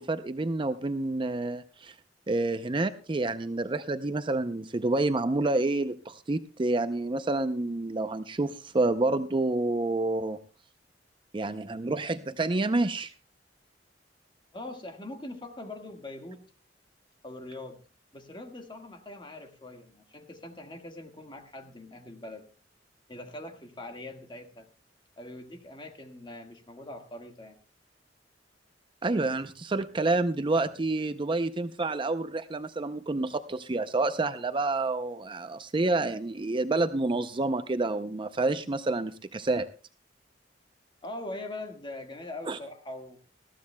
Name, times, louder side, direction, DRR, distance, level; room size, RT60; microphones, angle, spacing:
voice 1, 0.0-1.9 2.3-10.4 11.3-13.1 29.0-39.7 42.5-42.6, right 2 dB, 30° right, 10 dB, 0.5 m, -28 dB
voice 2, 14.5-16.4 17.2-17.8 18.1-22.4 23.1-24.7 25.2-27.6 41.0-43.2, left 2 dB, 25° left, 4 dB, 1.6 m, -42 dB
20.0 x 15.0 x 2.2 m, 0.34 s
head